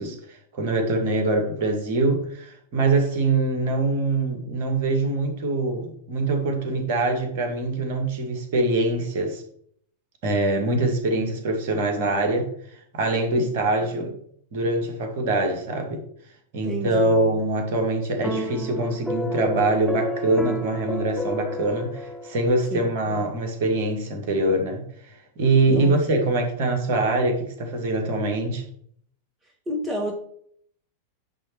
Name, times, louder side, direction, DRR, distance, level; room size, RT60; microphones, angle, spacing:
voice 1, 0.0-9.4 10.2-12.5 12.9-14.2 14.5-16.0 16.5-28.6, right 2 dB, 50° right, 4 dB, 1.9 m, -24 dB
voice 2, 16.6-17.3 22.7-23.2 25.6-25.9 29.7-30.1, equal, 20° right, 2 dB, 1.5 m, -31 dB
sound 1, 18.2-22.7, equal, 5° left, 1.0 m, -31 dB
10.0 x 3.4 x 6.1 m, 0.63 s
figure-of-eight pair, 90°, 0 cm